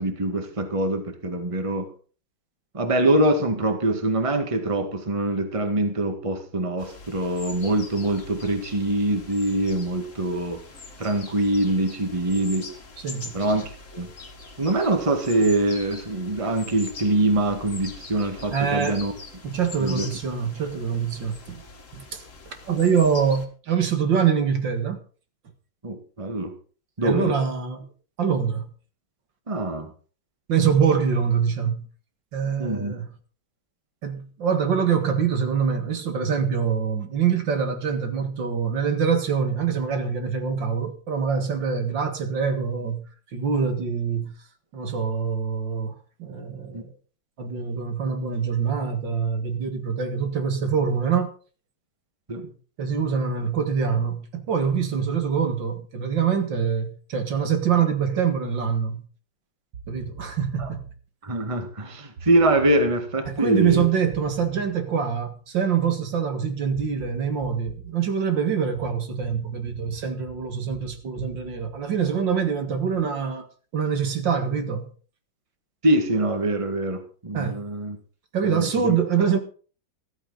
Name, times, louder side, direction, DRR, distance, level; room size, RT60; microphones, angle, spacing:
voice 1, 0.0-1.9 2.7-10.6 11.0-12.7 13.3-13.6 13.9-14.1 14.6-19.1 19.8-20.1 22.7-22.8 25.8-26.5 27.0-27.4 29.5-29.9 32.6-32.9 46.7-46.8 52.3-52.5 60.6-60.7 61.2-63.9 75.8-78.0 78.4-79.0, right 1 dB, 15° right, 1.8 m, -24 dB
sound 1, 6.8-23.5, left 3 dB, 40° left, 2.2 m, -43 dB
voice 2, 13.0-13.3 18.5-19.0 19.4-21.6 21.9-22.2 22.7-25.0 27.0-27.9 28.2-28.7 30.5-31.9 32.3-33.1 34.0-43.0 43.3-44.3 44.7-46.9 47.4-51.3 52.8-59.0 59.9-60.9 63.3-73.5 73.7-74.9 77.3-77.6 78.3-79.4, right 7 dB, 65° right, 2.4 m, -24 dB
sound 2, 59.7-61.0 62.2-65.9 66.8-68.0 68.8-72.7, right 3 dB, 80° right, 2.8 m, -43 dB
14.0 x 14.0 x 4.0 m
omnidirectional pair, 2.2 m